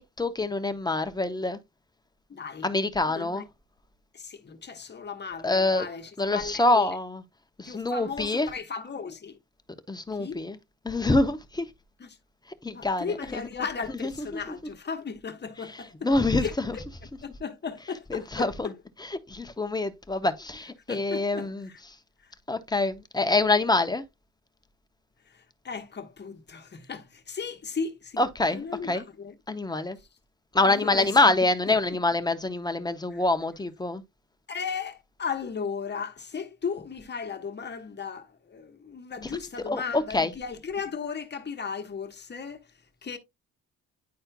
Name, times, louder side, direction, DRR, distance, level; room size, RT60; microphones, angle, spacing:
voice 1, 0.0-1.6 2.6-3.4 5.4-5.9 6.2-7.2 7.6-8.5 9.9-10.6 10.8-11.7 12.6-13.4 14.0-14.4 16.0-16.8 18.1-18.7 19.0-21.7 22.5-24.0 28.2-29.0 29.5-30.0 30.5-34.0 39.7-40.3, left 2 dB, 15° left, 0.8 m, -26 dB
voice 2, 2.3-2.7 3.1-3.4 4.1-6.9 7.6-9.4 10.1-10.4 12.0-12.2 12.7-16.1 16.4-16.5 17.2-18.8 20.9-21.8 22.2-22.3 25.3-28.2 28.5-29.3 30.6-31.2 31.7-31.8 33.1-33.2 34.5-42.7 43.0-43.2, left 6 dB, 35° left, 1.2 m, -36 dB
10.5 x 4.3 x 2.2 m
cardioid pair, 90°, 30 cm